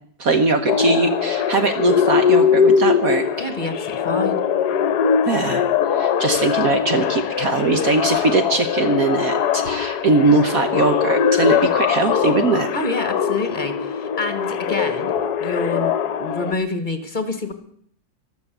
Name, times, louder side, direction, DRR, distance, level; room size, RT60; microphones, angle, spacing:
voice 1, 0.2-3.5 5.3-12.7, right 3 dB, 55° right, 8 dB, 1.3 m, -20 dB
sound 1, 0.7-16.5, left 7 dB, 65° left, 1.3 m, -21 dB
voice 2, 3.4-4.4 12.7-15.1 15.4-15.9 16.2-17.5, left 2 dB, 25° left, 9 dB, 1.4 m, -27 dB
13.5 x 12.0 x 8.0 m, 0.64 s
omnidirectional pair, 2.0 m